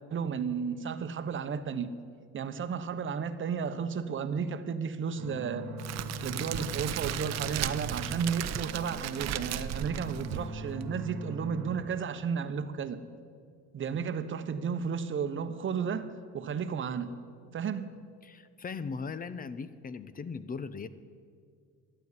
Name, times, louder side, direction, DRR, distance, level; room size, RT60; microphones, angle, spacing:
voice 1, 0.1-1.9 2.3-5.7 6.2-13.0 13.7-16.1 16.3-17.1 17.5-17.9, right 6 dB, 40° right, 1.0 m, -33 dB
sound 1, 5.1-11.7, right 2 dB, 90° right, 1.7 m, -41 dB
Crackle, 5.8-10.8, right 11 dB, 55° right, 0.7 m, -36 dB
voice 2, 18.2-20.9, left 5 dB, 25° left, 0.7 m, -38 dB
12.0 x 9.0 x 9.7 m
supercardioid pair, 95°, 32 cm